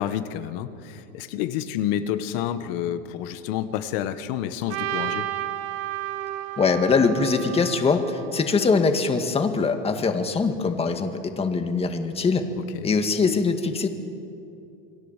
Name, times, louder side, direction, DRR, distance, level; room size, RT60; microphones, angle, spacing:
voice 1, 0.0-5.3 12.6-12.9, left 10 dB, 65° left, 10 dB, 1.7 m, -29 dB
Trumpet, 4.7-8.8, right 12 dB, 55° right, 1.7 m, -32 dB
voice 2, 6.6-12.5 12.8-13.9, left 4 dB, 20° left, 6 dB, 2.1 m, -22 dB
28.5 x 22.5 x 7.6 m, 2.7 s
supercardioid pair, 140°, 31 cm